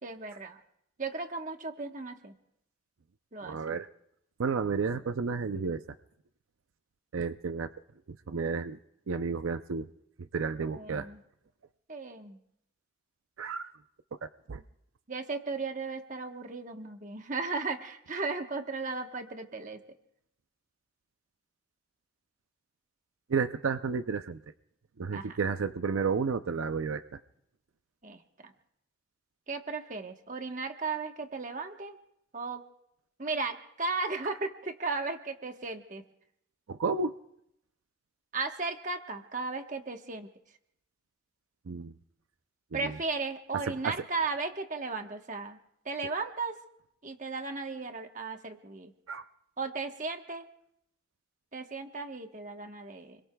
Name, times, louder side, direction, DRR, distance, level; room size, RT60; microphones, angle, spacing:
voice 1, 0.0-0.6 1.0-2.3 3.3-3.8 10.6-11.2 11.9-12.4 15.1-19.8 25.1-25.4 28.0-28.5 29.5-32.0 32.3-32.6 33.2-36.0 38.3-40.3 42.7-45.6 45.8-46.6 47.0-48.9 49.6-50.5 51.5-53.2, right 4 dB, 40° right, 5 dB, 1.2 m, -35 dB
voice 2, 3.4-3.9 4.4-5.8 7.1-7.7 8.1-8.8 9.1-9.9 10.2-11.1 13.4-13.7 14.2-14.6 23.3-24.4 25.0-27.2 36.7-37.2 41.7-41.9 42.7-43.0 43.5-44.0 49.1-49.2, right 5 dB, 85° right, 10 dB, 0.5 m, -32 dB
28.0 x 22.5 x 2.3 m, 0.77 s
head